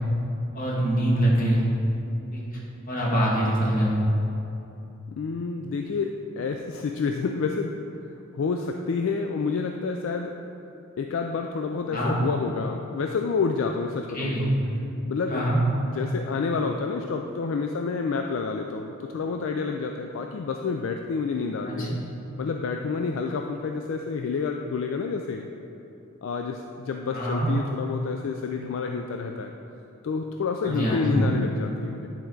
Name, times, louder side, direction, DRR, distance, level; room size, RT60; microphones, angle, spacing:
voice 1, 0.5-1.6 2.3-2.4 2.9-4.0 11.9-12.2 14.1-14.5 15.3-15.6 21.6-22.0 27.1-27.5 30.6-31.3, right 1 dB, 40° left, -6 dB, 1.6 m, -24 dB
voice 2, 5.2-7.9 8.3-10.4 11.0-14.5 15.1-15.5 15.9-22.0 22.4-25.5 26.2-29.5 30.0-32.1, left 4 dB, 65° left, 4 dB, 0.3 m, -29 dB
9.4 x 4.5 x 3.8 m, 2.9 s
head